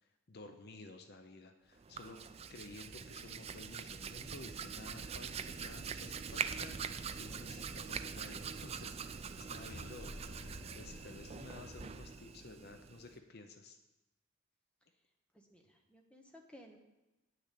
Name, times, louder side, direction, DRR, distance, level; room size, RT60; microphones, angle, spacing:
voice 1, 0.0-2.2 2.5-13.8, left 3 dB, 50° left, 6 dB, 0.7 m, -53 dB
Hands, 1.8-13.2, right 6 dB, 30° right, 0.4 m, -44 dB
sound 1, 9.4-12.4, left 1 dB, 65° left, 1.3 m, -53 dB
voice 2, 15.3-16.8, left 1 dB, 5° left, 2 dB, 1.1 m, -58 dB
9.2 x 6.6 x 8.4 m, 1.0 s
head